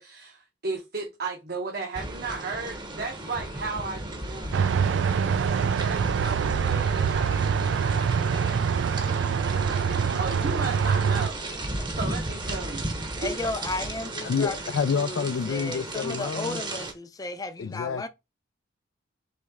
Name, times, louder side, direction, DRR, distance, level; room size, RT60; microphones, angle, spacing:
voice 1, 0.0-13.4, right 3 dB, 55° right, 0.9 m, -36 dB
sound 1, 1.9-16.9, right 2 dB, 25° right, 0.8 m, -35 dB
sound 2, 4.5-11.3, right 6 dB, 75° right, 0.4 m, -25 dB
voice 2, 13.2-14.6 14.9-18.1, left 2 dB, 20° left, 0.5 m, -34 dB
voice 3, 14.2-16.6 17.6-18.1, left 6 dB, 75° left, 0.4 m, -28 dB
4.2 x 3.2 x 3.5 m
head